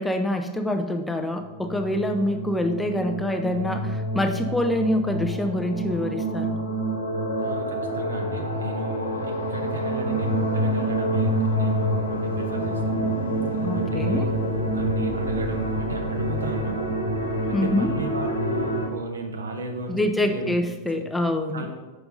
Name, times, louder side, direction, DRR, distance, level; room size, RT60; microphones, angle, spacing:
voice 1, 0.0-6.6 13.6-14.3 17.5-17.9 19.9-21.7, left 1 dB, 5° left, 5 dB, 0.5 m, -25 dB
sound 1, 1.5-18.9, right 1 dB, 80° left, 1.0 m, -27 dB
voice 2, 7.4-13.1 13.5-14.3 14.7-16.8 17.5-20.6 20.9-21.0 21.5-21.7, right 2 dB, 70° right, 3 dB, 0.9 m, -34 dB
5.7 x 5.3 x 3.9 m, 1.1 s
figure-of-eight pair, 90°, 0 cm